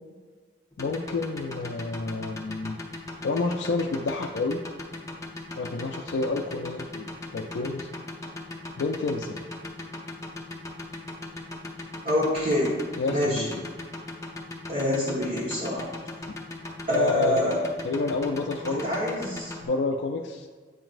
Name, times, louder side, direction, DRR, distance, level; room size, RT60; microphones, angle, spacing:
sound 1, 0.7-19.6, left 2 dB, 15° left, 0.6 m, -38 dB
voice 1, 0.8-2.8 3.2-4.6 5.6-7.9 8.8-9.4 13.0-13.7 16.9-18.8 19.6-20.5, left 3 dB, 75° left, 2 dB, 0.4 m, -29 dB
voice 2, 12.0-12.8 13.1-13.5 14.7-15.9 16.9-17.6 18.7-19.5, left 1 dB, 50° right, -7 dB, 1.3 m, -26 dB
8.1 x 5.9 x 2.5 m, 1.5 s
head